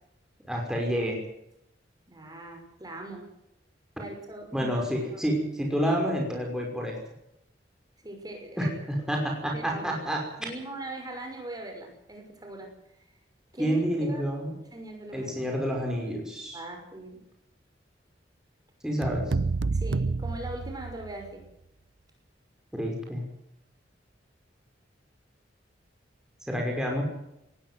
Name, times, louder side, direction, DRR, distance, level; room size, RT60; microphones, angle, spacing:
voice 1, 0.5-1.3 4.5-7.0 8.6-10.2 13.6-14.5 15.1-16.6 18.8-19.3 22.7-23.2 26.5-27.0, equal, 5° right, 0 dB, 5.8 m, -29 dB
voice 2, 2.1-3.3 4.0-4.7 5.1-5.2 8.0-8.7 9.5-10.0 10.4-12.7 13.5-14.2 14.7-15.5 16.5-17.2 19.7-21.5, right 1 dB, 20° right, 3 dB, 5.9 m, -41 dB
sound 1, 19.0-21.3, right 3 dB, 80° right, 0.7 m, -29 dB
19.5 x 15.5 x 9.4 m, 0.80 s
head